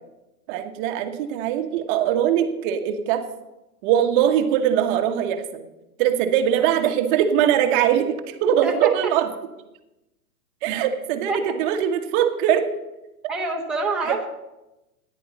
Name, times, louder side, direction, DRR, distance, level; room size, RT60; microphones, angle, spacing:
voice 1, 0.5-3.2 3.8-5.6 6.0-9.3 10.6-12.7 14.0-14.2, right 9 dB, 35° right, 6 dB, 1.2 m, -21 dB
voice 2, 13.3-14.3, right 3 dB, ahead, -3 dB, 1.2 m, -26 dB
13.5 x 10.5 x 4.1 m, 0.97 s
hypercardioid pair, 145°, 44 cm